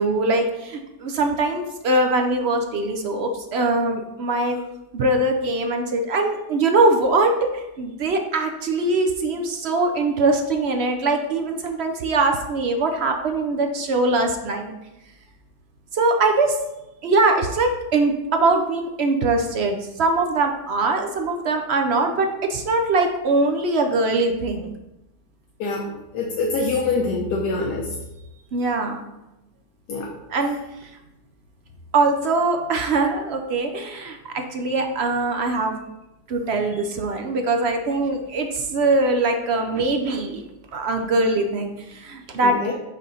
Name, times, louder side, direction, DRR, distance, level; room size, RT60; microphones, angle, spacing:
voice 1, 0.0-4.6 4.9-14.7 15.9-16.6 17.0-24.7 28.5-29.0 30.3-30.9 31.9-35.7 36.3-40.4 40.7-42.6, right 2 dB, 60° right, 4 dB, 0.7 m, -22 dB
voice 2, 26.1-27.9 29.9-30.1 42.4-42.7, left 3 dB, 80° left, -1 dB, 1.4 m, -24 dB
5.5 x 3.8 x 5.5 m, 0.95 s
omnidirectional pair, 1.7 m